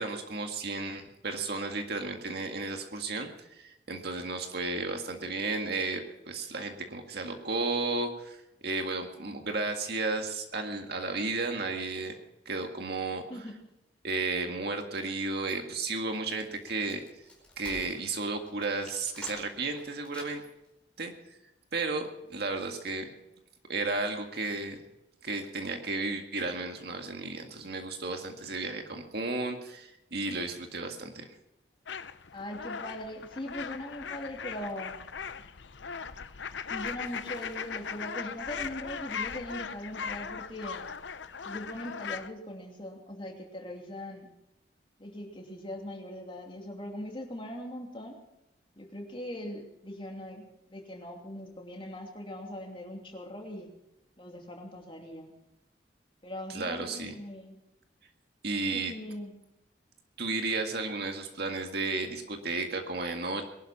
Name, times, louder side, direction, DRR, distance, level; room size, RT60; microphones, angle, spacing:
voice 1, 0.0-8.4 8.6-12.2 12.5-13.2 14.0-17.0 17.6-20.4 21.0-21.1 21.7-23.1 23.7-24.8 25.2-31.3 56.5-57.2 58.4-58.9 60.2-63.5, right 3 dB, 60° right, 4 dB, 1.9 m, -33 dB
voice 2, 13.3-13.6 32.3-35.0 36.7-40.8 41.4-44.3 45.0-48.2 48.8-53.7 54.2-55.3 56.2-57.6 58.5-59.3, left 1 dB, 30° left, 1 dB, 2.8 m, -40 dB
Wood, 15.9-20.7, left 2 dB, 5° left, 4.8 m, -50 dB
sound 1, 31.9-42.3, left 6 dB, 85° left, 0.7 m, -39 dB
22.0 x 12.0 x 4.3 m, 0.88 s
head